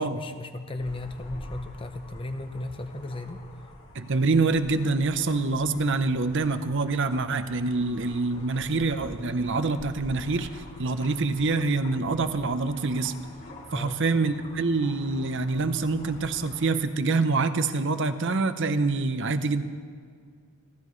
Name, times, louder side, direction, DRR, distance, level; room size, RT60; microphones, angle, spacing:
voice 1, 0.0-3.4 13.7-14.0, left 2 dB, 25° left, 7 dB, 0.8 m, -35 dB
sound 1, 0.8-16.8, left 1 dB, 65° left, 4.4 m, -47 dB
voice 2, 3.9-13.2 13.7-19.6, right 3 dB, 55° right, 10 dB, 0.8 m, -26 dB
28.5 x 13.0 x 3.2 m, 2.1 s
head